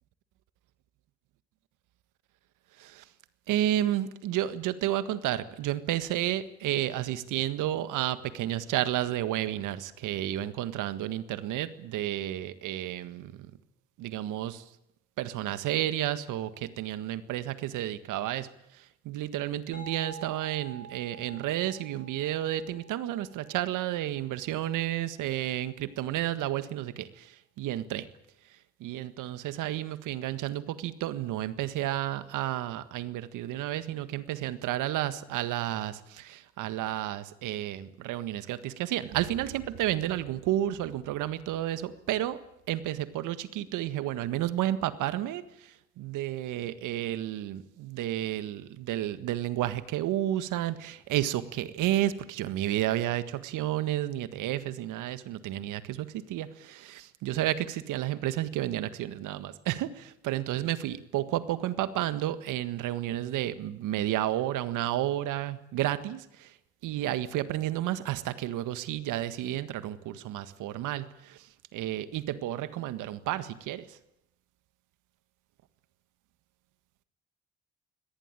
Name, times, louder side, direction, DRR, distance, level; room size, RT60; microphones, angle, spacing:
voice 1, 3.5-13.5 14.0-14.7 15.2-28.1 28.8-42.4 42.7-66.5 66.8-74.0, right 13 dB, 75° right, 12 dB, 1.7 m, -31 dB
sound 1, 19.7-25.2, right 4 dB, 25° left, 5.1 m, -49 dB
24.0 x 18.5 x 9.0 m, 0.85 s
hypercardioid pair, 50°, 31 cm